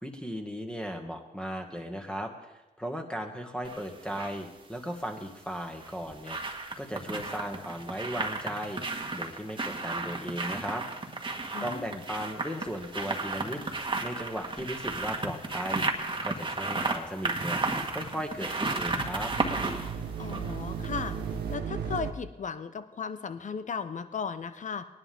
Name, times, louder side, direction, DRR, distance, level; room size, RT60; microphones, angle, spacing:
voice 1, 0.0-8.8 9.1-10.8 11.6-13.6 14.0-15.9 16.2-17.6 17.9-19.3, equal, 5° left, 4 dB, 2.0 m, -36 dB
sound 1, 3.6-4.4 5.6-21.2 21.5-21.6, right 3 dB, 30° right, 1.7 m, -33 dB
voice 2, 11.5-12.0 20.2-21.2 21.5-24.8, left 6 dB, 45° left, 12 dB, 0.8 m, -36 dB
sound 2, 18.5-22.1, right 6 dB, 75° right, 1.0 m, -36 dB
19.0 x 11.0 x 3.6 m, 1.0 s
cardioid pair, 65°, 17 cm